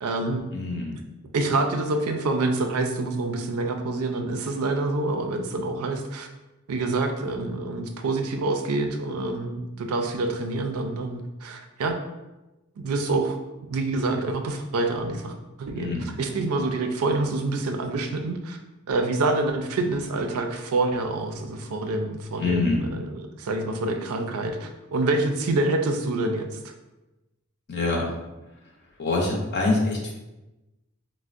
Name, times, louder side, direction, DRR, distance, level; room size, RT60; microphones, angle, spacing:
voice 1, 0.0-0.4 1.3-6.3 6.7-12.0 12.8-13.4 13.7-18.6 18.9-26.7, right 2 dB, 90° right, 5 dB, 0.4 m, -27 dB
voice 2, 0.5-1.0 15.7-16.1 22.4-22.8 27.7-28.1 29.0-30.1, left 3 dB, 50° left, -1 dB, 0.5 m, -25 dB
4.3 x 2.0 x 2.4 m, 1.0 s
head